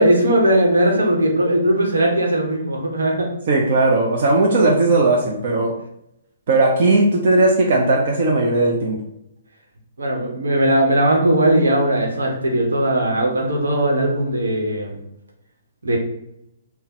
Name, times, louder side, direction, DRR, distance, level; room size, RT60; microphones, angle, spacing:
voice 1, 0.0-3.3 10.0-15.0 15.8-16.0, right 1 dB, 80° right, 1 dB, 1.1 m, -18 dB
voice 2, 3.5-5.7 6.5-9.0, right 2 dB, 50° right, 0 dB, 0.6 m, -17 dB
3.6 x 2.2 x 4.2 m, 0.81 s
hypercardioid pair, 130°, 0 cm